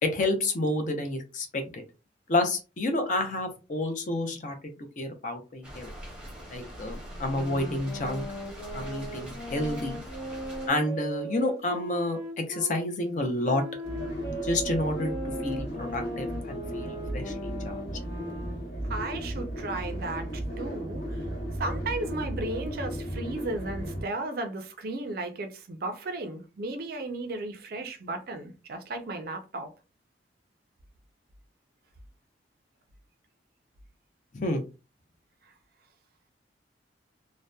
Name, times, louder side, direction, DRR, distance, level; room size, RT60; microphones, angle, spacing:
voice 1, 0.0-1.8 2.3-5.9 6.5-8.2 8.7-10.0 10.7-13.6 14.4-15.1 15.4-17.8 34.3-34.6, left 2 dB, 40° left, 0.5 m, -29 dB
sound 1, 5.6-10.7, equal, 5° right, 0.7 m, -42 dB
sound 2, 7.0-12.7 13.4-18.8, right 1 dB, 20° left, 0.9 m, -39 dB
sound 3, 13.8-24.0, equal, 65° left, 1.1 m, -35 dB
voice 2, 18.9-21.2 21.6-29.7, right 2 dB, 55° right, 0.4 m, -35 dB
2.7 x 2.1 x 2.2 m
head